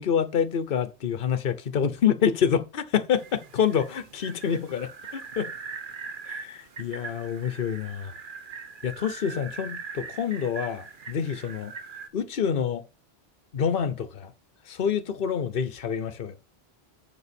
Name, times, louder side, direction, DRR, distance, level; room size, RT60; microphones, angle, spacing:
voice 1, 0.0-5.5 6.2-8.1 8.8-11.7 12.1-12.8 13.5-14.3 14.7-16.4, left 7 dB, 60° left, 1.0 m, -27 dB
sound 1, 3.1-12.1, right 5 dB, 55° right, 1.1 m, -41 dB
7.0 x 5.1 x 6.9 m
omnidirectional pair, 1.1 m